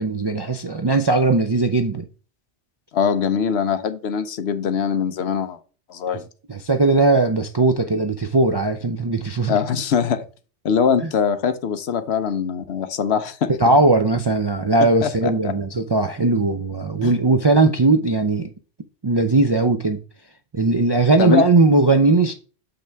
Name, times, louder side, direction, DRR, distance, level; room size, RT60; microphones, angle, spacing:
voice 1, 0.0-2.0 6.5-9.6 13.6-18.5 19.0-20.0 20.5-22.3, right 3 dB, 40° right, 0.3 m, -18 dB
voice 2, 2.9-5.6 5.9-6.2 9.5-10.2 10.6-13.6 14.8-15.5 17.0-17.1 21.2-21.5, left 7 dB, 65° left, 1.0 m, -22 dB
6.6 x 5.7 x 3.4 m
omnidirectional pair, 1.2 m